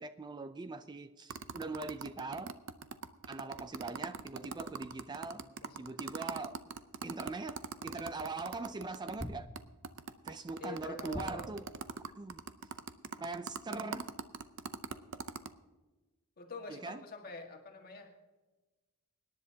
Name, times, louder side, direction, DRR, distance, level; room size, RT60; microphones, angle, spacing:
voice 1, 0.0-2.5 3.3-5.4 5.8-6.6 7.0-9.5 10.2-11.7 12.2-12.4 13.2-14.1 16.7-17.0, right 3 dB, 20° right, 11 dB, 0.4 m, -41 dB
sound 1, 1.3-9.3 9.6-9.7 9.8-15.5, right 5 dB, 60° right, 0.6 m, -41 dB
voice 2, 5.3-6.0 10.6-11.6 16.4-18.1, left 3 dB, 45° left, 2 dB, 1.7 m, -46 dB
sound 2, 9.2-10.0 11.1-11.9, equal, 5° left, 0.7 m, -44 dB
24.5 x 10.5 x 2.8 m, 1.2 s
head